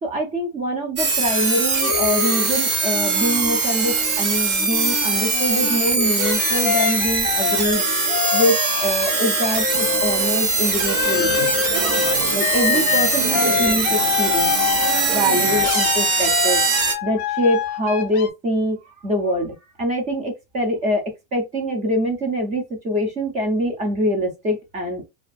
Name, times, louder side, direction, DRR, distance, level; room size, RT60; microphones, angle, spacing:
voice 1, 0.0-7.9 8.3-11.5 12.3-14.5 15.1-16.6 17.0-25.0, equal, 15° right, 0.3 m, -24 dB
sound 1, 1.0-16.9, right 4 dB, 30° right, 0.9 m, -22 dB
sound 2, 1.3-4.2 4.6-10.4 10.9-18.3, left 10 dB, 45° left, 0.4 m, -26 dB
sound 3, 9.7-15.7, right 10 dB, 80° right, 0.6 m, -32 dB
2.5 x 2.4 x 2.3 m
supercardioid pair, 150°, 45 cm